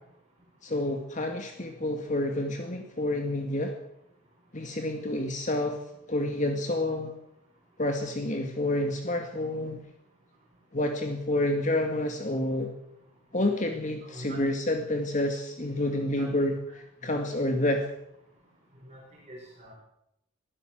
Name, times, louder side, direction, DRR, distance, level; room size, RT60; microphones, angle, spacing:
voice 1, 0.6-3.7 4.5-5.8 6.1-7.1 7.8-9.8 10.7-12.7 13.3-17.9, left 1 dB, 35° left, 4 dB, 2.1 m, -29 dB
voice 2, 14.0-14.5 15.8-16.3 17.0-17.2 18.8-19.0 19.3-19.7, right 1 dB, 35° right, -2 dB, 5.6 m, -45 dB
23.0 x 15.5 x 7.7 m, 0.81 s
head